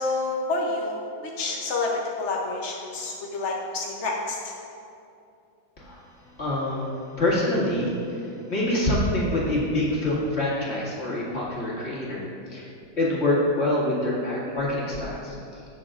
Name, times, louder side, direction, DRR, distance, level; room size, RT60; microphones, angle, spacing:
voice 1, 0.0-1.9 2.2-4.5, left 3 dB, 60° left, -2 dB, 0.7 m, -29 dB
voice 2, 6.4-12.2 12.5-12.7 13.0-15.3, left 1 dB, 30° left, -7 dB, 2.2 m, -26 dB
18.0 x 6.9 x 2.5 m, 2.6 s
omnidirectional pair, 2.2 m